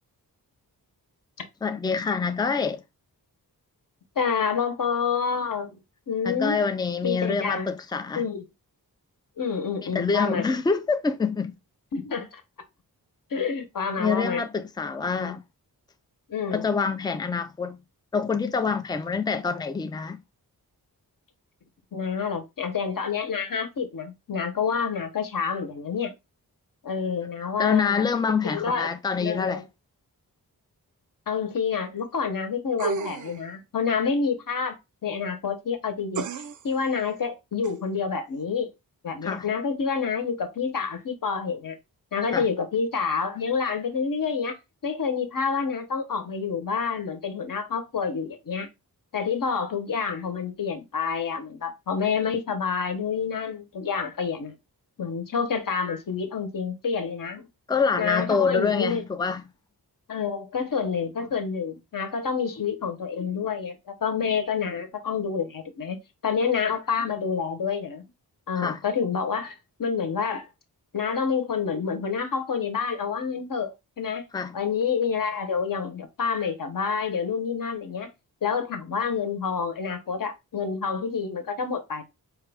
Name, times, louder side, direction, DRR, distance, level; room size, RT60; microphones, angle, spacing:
voice 1, 1.6-2.8 6.2-8.2 9.9-11.5 14.0-15.4 16.5-17.8 18.1-20.2 27.6-29.6 39.2-39.5 42.3-42.5 57.7-59.4 68.6-68.8 74.3-74.6, left 5 dB, 10° left, 0.4 m, -26 dB
voice 2, 4.2-5.8 6.1-6.6 7.0-7.7 8.2-8.4 9.4-10.5 11.9-12.4 13.3-14.4 15.2-15.4 16.3-16.7 21.9-26.1 26.8-28.0 28.4-29.6 31.3-34.8 35.0-38.7 39.0-41.8 42.1-44.6 44.8-48.7 49.1-54.6 55.0-57.5 58.0-59.0 60.1-66.0 66.2-68.1 68.5-70.5 70.9-74.2 74.5-78.1 78.4-82.0, left 6 dB, 60° left, 1.0 m, -28 dB
sound 1, 32.8-33.5 36.1-36.7 37.6-37.7, right 5 dB, 55° right, 0.5 m, -31 dB
4.6 x 2.3 x 3.4 m
wide cardioid pair, 85°, 38 cm